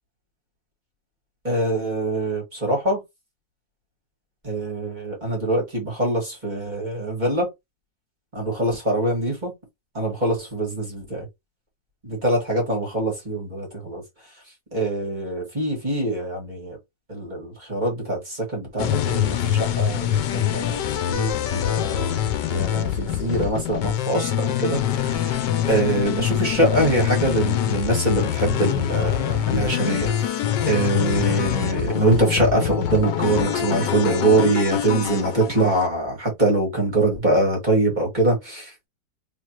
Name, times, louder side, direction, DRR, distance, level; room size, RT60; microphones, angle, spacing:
voice 1, 1.4-3.0 4.4-7.5 8.3-9.5 9.9-11.0 12.0-14.0 14.7-16.8 17.1-22.1 22.5-30.2 30.7-38.7, right 2 dB, 25° right, 2.1 m, -24 dB
sound 1, 18.8-35.9, left 10 dB, 85° left, 1.3 m, -24 dB
3.6 x 3.4 x 2.9 m
omnidirectional pair, 1.8 m